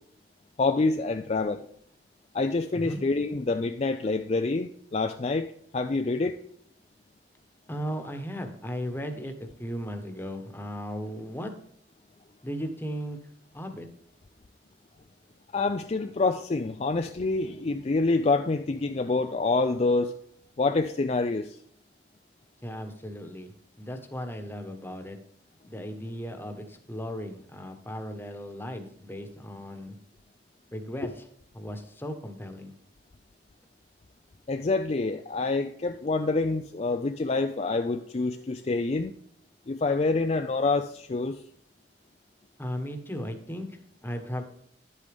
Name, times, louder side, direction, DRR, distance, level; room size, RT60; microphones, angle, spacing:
voice 1, 0.6-1.7 2.3-5.5 5.7-6.4 15.5-20.2 20.6-21.6 31.0-31.1 34.5-39.1 39.7-41.4, left 3 dB, 35° left, 6 dB, 0.4 m, -27 dB
voice 2, 7.7-11.5 12.4-13.2 13.5-13.9 22.6-23.5 23.8-25.2 25.7-29.9 30.7-31.2 31.5-32.7 42.6-44.4, equal, 10° left, 6 dB, 1.2 m, -36 dB
11.0 x 8.3 x 3.5 m, 0.65 s
head